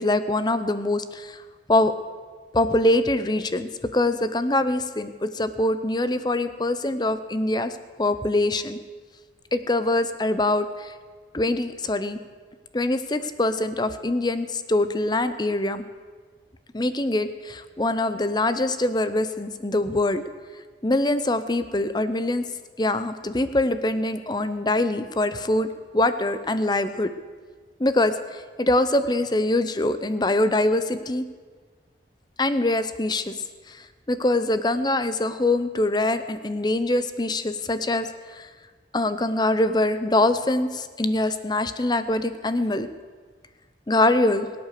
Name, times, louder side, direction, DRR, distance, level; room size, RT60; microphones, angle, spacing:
voice 1, 0.0-1.4 1.7-1.9 2.5-8.8 9.5-10.9 11.3-12.2 12.7-15.8 16.7-20.2 20.8-22.4 22.8-25.7 25.9-27.1 27.8-31.2 32.4-33.3 33.7-33.8 34.1-38.1 38.3-38.5 38.9-42.9 43.9-44.5, left 2 dB, 25° left, 11 dB, 0.7 m, -23 dB
22.5 x 8.8 x 6.7 m, 1.5 s
head